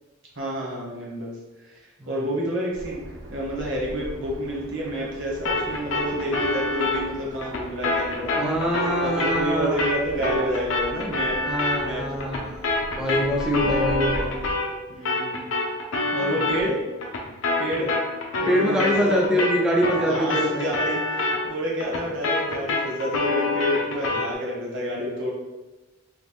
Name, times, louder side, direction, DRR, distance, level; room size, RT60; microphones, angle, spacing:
voice 1, 0.4-1.4 1.6-1.8 2.1-3.0 3.3-8.6 9.0-11.4 11.8-12.0 13.8-13.9 14.9-15.4 16.1-16.8 17.6-17.9 18.4-19.4 20.1-25.3, equal, 65° right, -3 dB, 1.0 m, -29 dB
voice 2, 2.0-2.3 8.2-9.8 11.4-14.3 16.2-16.5 18.4-20.7, equal, 5° right, -3 dB, 0.5 m, -25 dB
sound 1, 2.7-14.5, equal, 80° right, 0.5 m, -40 dB
sound 2, 5.5-14.8 15.1-24.4, left 2 dB, 75° left, 0.6 m, -27 dB
3.0 x 2.3 x 3.6 m, 1.1 s
head